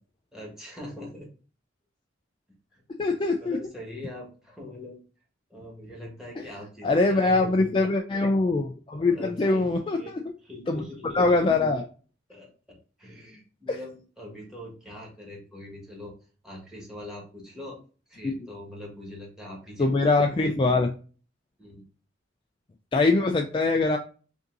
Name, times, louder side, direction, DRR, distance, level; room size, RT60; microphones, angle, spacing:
voice 1, 0.3-1.3 2.7-2.8 3.4-5.0 5.5-7.6 9.1-10.1 10.4-11.3 12.3-16.1 16.4-17.8 18.1-20.3 21.6-21.8, left 1 dB, 5° right, -2 dB, 1.4 m, -42 dB
voice 2, 3.0-3.6 6.4-6.5 6.8-10.3 10.7-10.9 11.1-11.9 13.7-13.8 18.2-18.5 19.8-20.9 22.9-24.0, left 3 dB, 25° left, 3 dB, 0.3 m, -23 dB
5.2 x 2.7 x 2.6 m, 0.37 s
head